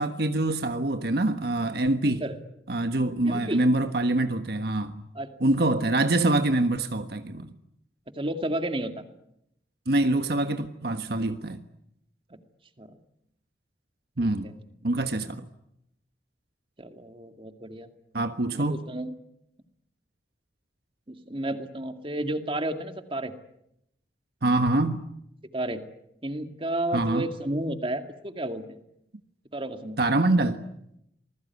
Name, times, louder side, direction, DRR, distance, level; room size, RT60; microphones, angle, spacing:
voice 1, 0.0-2.2 2.7-5.0 5.4-7.5 9.9-11.6 14.2-14.5 14.8-15.4 18.1-18.8 24.4-25.0 26.9-27.3 30.0-30.6, right 2 dB, 60° right, 1.4 m, -25 dB
voice 2, 2.1-2.4 3.2-3.6 5.1-5.3 5.6-5.7 8.2-8.9 12.3-12.4 12.8-12.9 14.4-14.6 16.8-17.9 18.5-19.1 21.1-23.3 25.5-25.8 26.2-28.8 29.5-30.0, right 1 dB, 30° right, 2.2 m, -32 dB
28.0 x 20.5 x 9.6 m
head